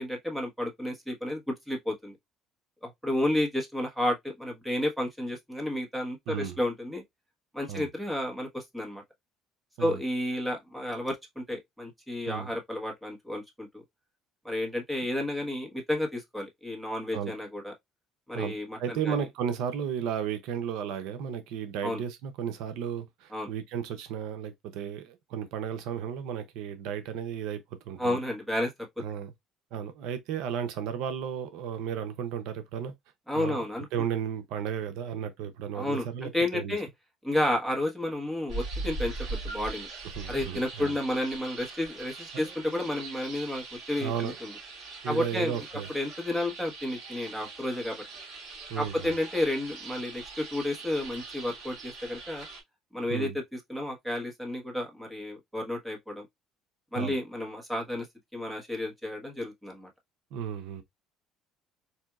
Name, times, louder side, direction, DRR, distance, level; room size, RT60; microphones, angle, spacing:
voice 1, 0.0-2.2 2.8-7.0 7.5-9.0 9.8-13.8 14.4-17.7 18.3-19.2 21.8-22.0 23.3-23.5 28.0-29.0 33.3-33.9 35.7-36.9 37.2-39.9 40.3-44.5 45.1-45.6 45.9-48.0 48.8-52.5 52.9-56.3 56.9-58.1 58.3-59.9, left 1 dB, 5° right, 1.2 m, -31 dB
voice 2, 6.3-6.6 7.7-7.9 9.8-10.0 12.3-12.5 17.1-17.3 18.3-28.2 29.0-29.3 29.7-32.9 33.3-33.6 33.9-36.8 40.2-41.0 42.3-42.5 44.0-44.4 45.0-45.9 48.7-49.1 53.1-53.3 56.9-57.1 60.3-60.8, right 8 dB, 80° right, 0.6 m, -34 dB
sound 1, 38.5-52.6, right 3 dB, 60° right, 2.8 m, -41 dB
4.2 x 2.6 x 2.3 m
cardioid pair, 110°, 0 cm